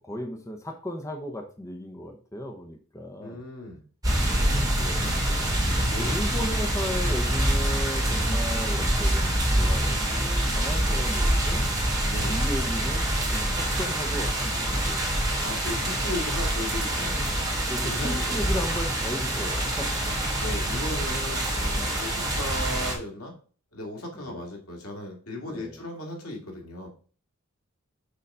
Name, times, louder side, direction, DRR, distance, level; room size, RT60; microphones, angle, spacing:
voice 1, 0.0-3.4 4.1-5.5 6.0-11.6 12.3-15.0 17.7-19.9 21.8-22.1 24.1-24.4 25.5-25.8, equal, 15° left, 3 dB, 0.9 m, -36 dB
voice 2, 3.2-3.8 5.9-6.2 10.0-10.6 12.1-12.5 15.4-17.2 17.8-18.4 20.4-23.3 23.7-26.9, left 1 dB, 90° left, 1 dB, 2.4 m, -36 dB
sound 1, 4.0-22.9, right 1 dB, 15° right, 2.7 m, -26 dB
6.7 x 4.0 x 5.5 m, 0.40 s
head